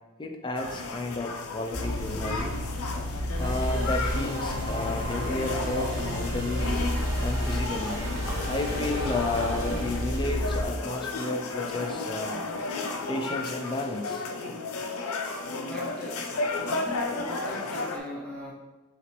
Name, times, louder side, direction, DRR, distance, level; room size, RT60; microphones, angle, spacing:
voice 1, 0.2-2.6 3.4-6.7 7.2-8.1 8.5-12.4 13.1-14.3, left 2 dB, 20° left, 3 dB, 0.4 m, -32 dB
sound 1, 0.6-18.0, left 3 dB, 85° left, 0.5 m, -33 dB
sound 2, 1.7-10.7, left 1 dB, 65° right, 1.4 m, -32 dB
sound 3, 3.4-10.5, right 1 dB, 85° right, 1.3 m, -36 dB
voice 2, 15.6-16.3 16.6-18.5, equal, 5° left, -5 dB, 0.8 m, -39 dB
6.8 x 2.5 x 2.9 m, 1.2 s
head